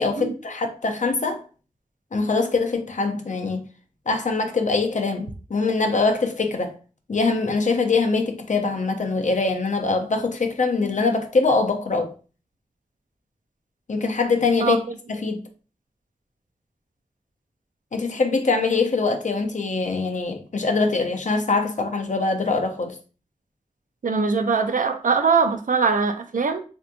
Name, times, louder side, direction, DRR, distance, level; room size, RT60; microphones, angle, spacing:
voice 1, 0.0-1.4 2.1-3.7 4.1-6.8 7.1-12.1 13.9-14.8 15.1-15.4 17.9-23.0, left 3 dB, 65° left, 0.6 m, -23 dB
voice 2, 24.0-26.6, right 5 dB, 80° right, 0.5 m, -21 dB
3.4 x 2.7 x 2.6 m
wide cardioid pair, 50°, 13 cm